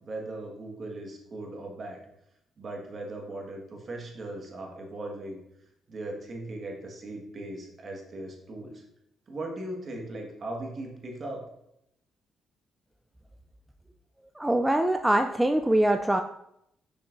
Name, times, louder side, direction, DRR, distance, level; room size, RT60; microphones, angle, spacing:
voice 1, 0.0-2.0 2.6-5.4 5.9-8.8 9.3-11.4, right 2 dB, 45° right, 1 dB, 1.6 m, -38 dB
voice 2, 14.4-16.2, right 1 dB, 10° right, 6 dB, 0.3 m, -23 dB
6.7 x 5.9 x 2.6 m, 0.79 s
cardioid pair, 90°, 0 cm